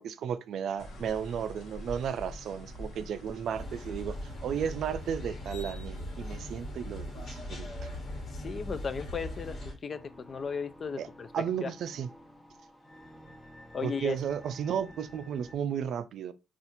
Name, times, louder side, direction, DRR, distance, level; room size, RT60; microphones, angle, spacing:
voice 1, 0.0-7.9 11.0-11.1 11.3-12.1 13.8-16.3, right 8 dB, 70° right, 0.4 m, -34 dB
sound 1, 0.8-5.6, left 1 dB, 75° left, 1.0 m, -46 dB
sound 2, 3.5-9.7, left 1 dB, 60° left, 1.3 m, -39 dB
voice 2, 8.3-11.3 11.6-11.7 13.7-14.2, left 5 dB, 45° left, 0.3 m, -36 dB
sound 3, 9.9-15.5, equal, 15° left, 0.8 m, -52 dB
4.2 x 2.4 x 2.6 m
cardioid pair, 90°, 0 cm